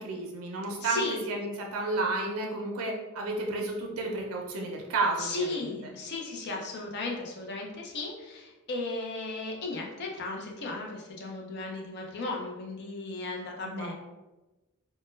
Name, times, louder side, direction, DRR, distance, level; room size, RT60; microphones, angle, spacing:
voice 1, 0.0-5.9 13.6-13.9, right 3 dB, 80° right, 1 dB, 0.4 m, -32 dB
voice 2, 0.8-1.2 5.2-13.9, left 3 dB, 50° left, 0 dB, 0.5 m, -35 dB
2.1 x 2.1 x 3.0 m, 1.1 s
head